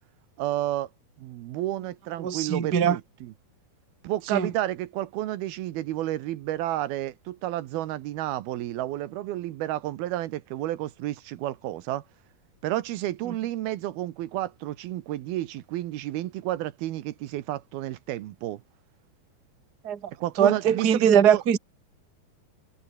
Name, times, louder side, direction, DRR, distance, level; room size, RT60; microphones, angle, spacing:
voice 1, 0.4-0.9 1.2-3.3 4.0-12.0 12.6-18.6 20.2-21.4, right 14 dB, 80° right, 2.9 m, -31 dB
voice 2, 2.2-3.0 4.3-4.5 13.3-13.4 19.8-20.0 20.4-21.6, right 8 dB, 35° right, 1.8 m, -21 dB
omnidirectional pair, 4.4 m